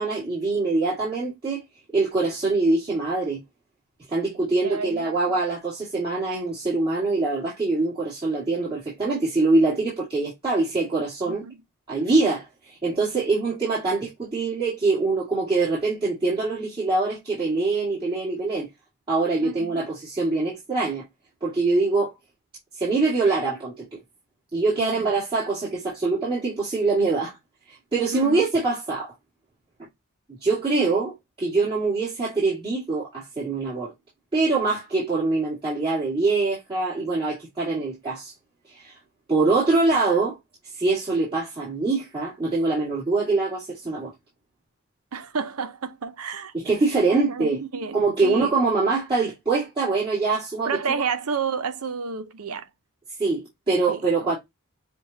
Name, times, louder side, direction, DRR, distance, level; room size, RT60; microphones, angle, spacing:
voice 1, 0.0-1.6 1.9-3.4 4.1-11.5 11.9-18.7 19.1-21.0 21.4-22.1 22.8-24.0 24.5-27.4 27.7-29.1 30.4-33.9 34.3-38.3 38.7-38.9 39.3-40.4 40.8-44.1 46.6-47.6 47.9-50.7 53.2-54.4, right 3 dB, 25° right, 2.0 m, -24 dB
voice 2, 4.6-5.1 11.2-11.6 19.4-19.9 24.8-25.1 28.1-28.5 45.1-46.5 47.1-48.8 50.6-52.7 53.9-54.0, right 5 dB, 75° right, 0.7 m, -31 dB
6.7 x 2.3 x 2.7 m
head